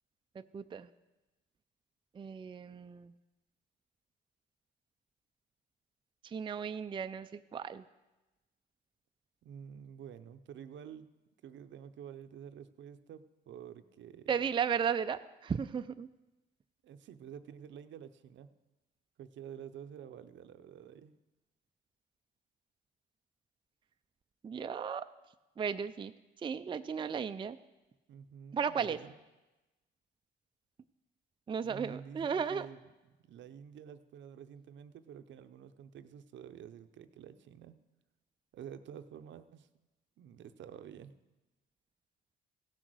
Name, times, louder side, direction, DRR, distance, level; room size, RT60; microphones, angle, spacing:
voice 1, 0.5-0.9 2.1-3.1 6.2-7.8 14.3-16.1 24.4-25.1 25.6-26.1 26.4-27.6 28.5-29.0 31.5-32.7, right 7 dB, 25° right, 10 dB, 0.4 m, -35 dB
voice 2, 9.4-11.1 11.4-14.4 16.8-18.5 19.2-21.2 28.1-29.1 31.6-37.8 38.5-39.7 40.2-41.1, right 8 dB, 70° right, 11 dB, 0.7 m, -49 dB
16.0 x 6.4 x 6.2 m, 1.1 s
cardioid pair, 90°, 20 cm